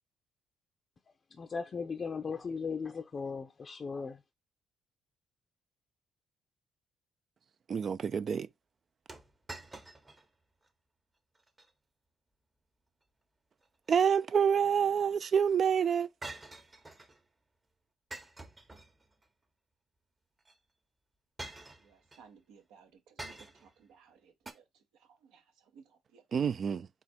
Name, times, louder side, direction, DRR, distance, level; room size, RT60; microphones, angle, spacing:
voice 1, 1.3-4.2, left 5 dB, 45° left, 0.5 m, -37 dB
voice 2, 7.7-8.5 13.9-16.1 26.3-26.9, right 7 dB, 50° right, 0.3 m, -27 dB
sound 1, 9.1-10.3 10.6-10.7 11.4-11.7 13.6-14.5 16.2-17.2 18.1-19.3 20.4-20.6 21.4-22.2 23.2-23.8 24.5-24.6, right 2 dB, 25° right, 0.9 m, -47 dB
voice 3, 21.8-26.4, right 6 dB, 75° right, 0.8 m, -60 dB
4.0 x 2.4 x 4.3 m
hypercardioid pair, 50°, 0 cm